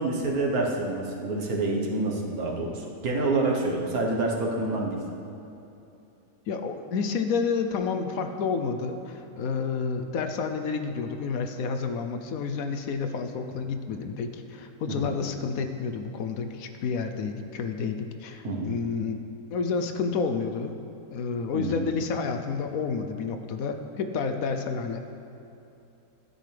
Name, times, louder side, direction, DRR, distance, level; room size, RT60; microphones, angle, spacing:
voice 1, 0.0-5.0 14.9-15.1 18.4-18.7 21.5-21.8, right 2 dB, 70° right, -1 dB, 1.7 m, -27 dB
voice 2, 6.5-19.2 19.5-20.7 21.1-25.0, left 5 dB, 70° left, 7 dB, 1.0 m, -30 dB
13.0 x 9.5 x 3.3 m, 2.9 s
omnidirectional pair, 1.6 m